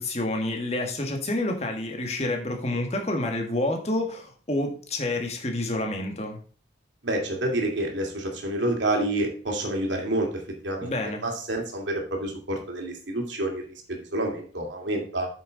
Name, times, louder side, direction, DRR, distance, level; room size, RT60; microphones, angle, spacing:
voice 1, 0.0-6.4 10.8-11.2, left 1 dB, 35° left, 3 dB, 1.7 m, -28 dB
voice 2, 7.0-10.9 11.2-13.6 13.9-15.3, right 1 dB, 80° right, 1 dB, 2.5 m, -28 dB
8.7 x 6.5 x 4.0 m, 0.41 s
head